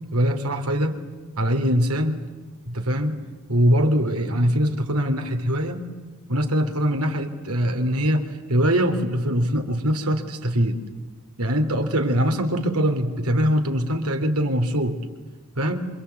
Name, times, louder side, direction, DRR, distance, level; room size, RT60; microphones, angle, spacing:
voice 1, 0.1-1.0 1.4-2.2 2.7-3.2 3.5-5.9 6.3-10.8 11.4-15.0 15.5-15.9, equal, 90° right, 6 dB, 3.1 m, -22 dB
27.5 x 25.0 x 8.3 m, 1.3 s
head